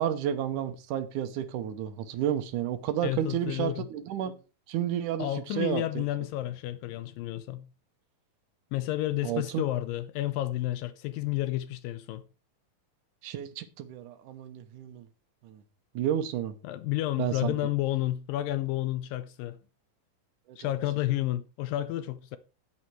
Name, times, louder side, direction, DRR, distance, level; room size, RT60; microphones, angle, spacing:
voice 1, 0.0-4.3 4.7-6.1 9.2-9.6 13.2-15.1 15.4-15.6 16.0-16.5 17.2-17.5 20.5-20.7, right 10 dB, 70° right, 2.2 m, -31 dB
voice 2, 3.0-3.9 5.2-7.7 8.7-12.2 16.6-19.6 20.6-22.4, left 15 dB, 80° left, 2.3 m, -31 dB
9.4 x 9.4 x 4.4 m
omnidirectional pair, 4.0 m